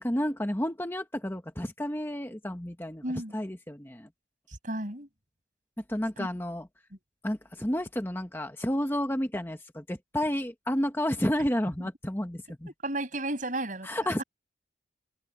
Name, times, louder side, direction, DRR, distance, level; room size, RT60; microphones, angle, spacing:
voice 1, 0.0-3.0 3.3-4.1 5.9-6.7 7.2-12.7 13.8-14.2, equal, 10° left, 1.3 m, -31 dB
voice 2, 3.0-3.3 4.6-5.1 6.2-6.3 12.8-13.9 14.2-14.3, right 1 dB, 45° right, 6.3 m, -32 dB
head